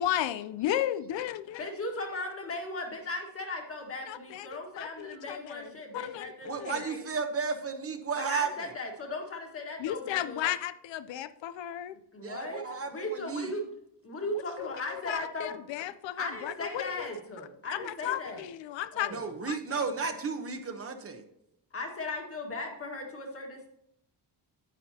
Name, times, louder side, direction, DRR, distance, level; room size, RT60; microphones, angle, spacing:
voice 1, 0.0-1.7 4.1-4.5 4.8-6.8 9.8-12.0 14.6-17.1 17.7-19.1 19.4-19.8, left 12 dB, 85° left, 13 dB, 0.6 m, -34 dB
voice 2, 1.6-7.0 8.2-10.4 12.1-13.7 14.0-15.6 16.2-18.4 18.9-19.2 21.7-23.7, left 2 dB, 30° left, 2 dB, 1.7 m, -37 dB
voice 3, 6.5-8.7 12.2-13.5 19.1-21.2, right 5 dB, 35° right, 7 dB, 0.8 m, -33 dB
10.0 x 9.2 x 2.8 m, 0.77 s
wide cardioid pair, 175°, 43 cm